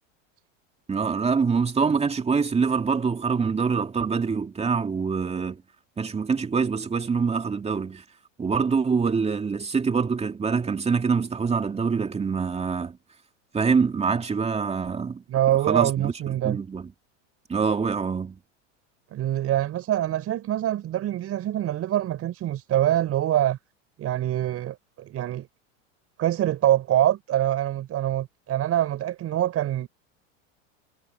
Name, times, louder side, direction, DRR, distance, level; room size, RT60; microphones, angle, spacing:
voice 1, 0.9-5.6 6.0-8.0 8.4-13.0 13.5-15.2 15.7-16.1 16.4-16.9 17.5-18.4, right 5 dB, 15° right, 2.6 m, -25 dB
voice 2, 15.3-16.6 19.1-23.6 24.0-25.5 26.2-29.9, right 12 dB, 40° right, 6.0 m, -25 dB
supercardioid pair, 120°, 38 cm